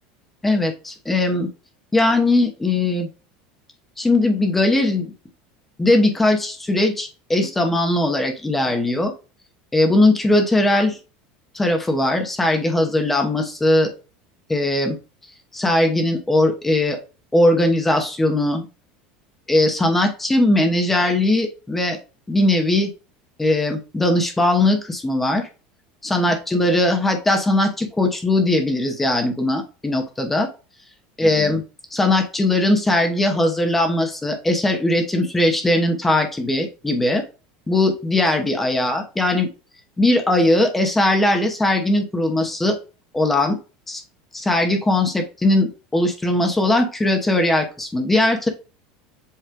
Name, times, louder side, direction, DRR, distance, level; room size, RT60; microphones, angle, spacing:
voice 1, 0.4-1.5 1.9-3.1 4.0-5.1 5.8-9.1 9.7-11.0 11.5-13.9 14.5-15.0 15.5-17.0 17.3-18.7 19.5-22.0 22.3-22.9 23.4-25.5 26.0-30.5 31.2-31.6 31.9-37.2 37.7-39.5 40.0-42.8 43.1-43.6 43.9-44.0 44.3-48.5, left 1 dB, 5° left, 4 dB, 1.0 m, -19 dB
7.6 x 3.2 x 4.6 m, 0.32 s
cardioid pair, 175°, 3 cm